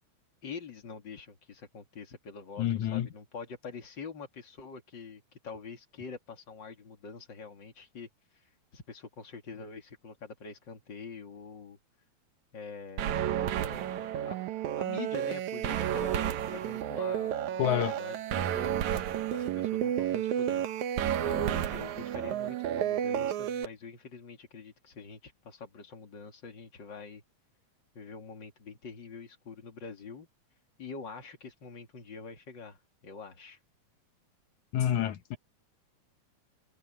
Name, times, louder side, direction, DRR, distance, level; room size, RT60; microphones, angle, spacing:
voice 1, 0.4-8.1 8.7-11.8 12.5-14.4 14.7-18.7 19.3-27.2 27.9-30.3 30.8-33.6, left 5 dB, 40° left, 2.8 m, -45 dB
voice 2, 2.6-3.1 17.6-17.9 34.7-35.4, left 10 dB, 75° left, 2.3 m, -28 dB
sound 1, 13.0-23.7, right 10 dB, 75° right, 2.4 m, -31 dB
omnidirectional pair, 3.5 m